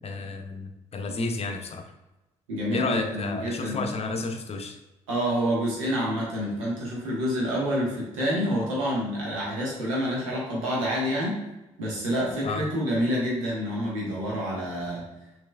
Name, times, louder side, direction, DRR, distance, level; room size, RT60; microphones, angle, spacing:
voice 1, 0.0-1.9 2.7-4.8 12.4-12.7, left 3 dB, 35° left, 6 dB, 0.7 m, -31 dB
voice 2, 2.5-3.8 5.1-11.4 11.8-15.1, equal, 80° right, -4 dB, 1.3 m, -28 dB
6.0 x 3.2 x 2.3 m, 1.0 s
figure-of-eight pair, 45°, 17 cm